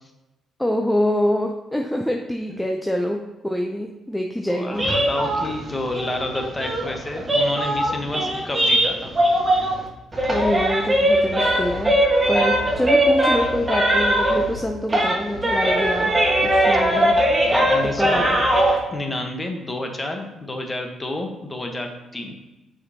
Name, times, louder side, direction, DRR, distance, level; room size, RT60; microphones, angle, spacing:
voice 1, 0.6-3.2 3.4-4.9 10.3-11.9 12.3-16.1 16.4-17.1 18.0-18.4, left 1 dB, 5° left, 2 dB, 0.5 m, -25 dB
voice 2, 4.5-9.1 16.4-17.0 17.5-18.2 18.9-22.3, left 1 dB, 20° left, 4 dB, 1.0 m, -30 dB
sound 1, 4.7-9.9 10.1-14.6 14.9-18.8, right 1 dB, 20° right, 1.5 m, -20 dB
6.6 x 5.2 x 2.8 m, 1.0 s
cardioid pair, 90°, 0 cm